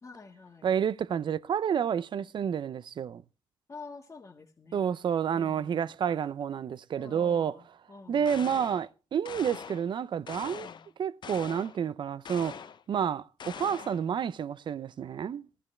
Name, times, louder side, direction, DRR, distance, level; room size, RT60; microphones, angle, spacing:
voice 1, 0.0-0.7 3.7-5.0 5.3-6.0 7.0-8.8 10.6-10.9, left 4 dB, 30° left, 1.5 m, -49 dB
voice 2, 0.6-3.2 4.7-7.6 8.1-10.7 11.0-15.5, right 8 dB, 55° right, 0.6 m, -30 dB
sound 1, 8.2-8.9 9.2-9.9 10.3-10.9 11.2-11.8 12.2-12.8 13.4-14.0, left 7 dB, 55° left, 0.7 m, -43 dB
15.5 x 12.5 x 3.3 m
cardioid pair, 105°, 9 cm